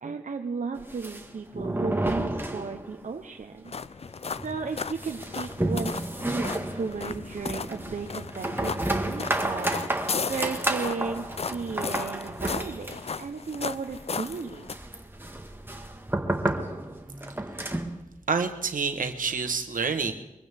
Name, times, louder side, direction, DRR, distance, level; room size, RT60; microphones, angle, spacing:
voice 1, 0.0-3.7 4.4-14.7, right 4 dB, 70° right, 4 dB, 0.8 m, -35 dB
sound 1, 0.8-3.1 3.4-3.5 3.8-3.9 4.4-18.0, right 1 dB, 15° right, 1.5 m, -31 dB
sound 2, 3.7-14.7, left 5 dB, 50° left, 0.4 m, -36 dB
voice 2, 18.3-20.1, right 5 dB, 90° right, 7 dB, 1.2 m, -27 dB
23.0 x 15.0 x 3.5 m, 0.97 s
cardioid pair, 50°, 14 cm